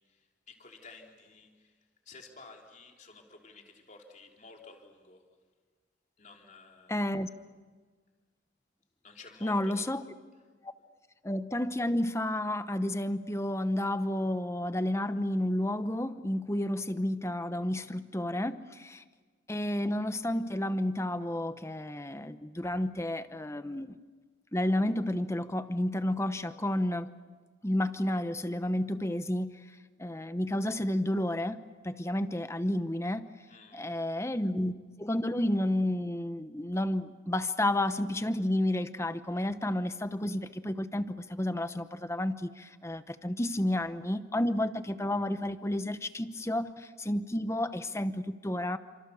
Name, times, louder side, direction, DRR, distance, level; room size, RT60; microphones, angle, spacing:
voice 1, 0.0-1.7 2.1-5.2 6.2-7.0 9.0-9.8 33.5-33.9, left 3 dB, 40° left, 2 dB, 3.4 m, -52 dB
voice 2, 6.9-7.3 9.4-10.0 10.6-10.7 11.2-19.0 19.5-24.0 24.5-27.1 27.6-29.7 30.0-33.3 33.7-34.7 35.0-48.8, left 1 dB, 15° left, 12 dB, 0.9 m, -31 dB
30.0 x 26.5 x 7.0 m, 1.4 s
head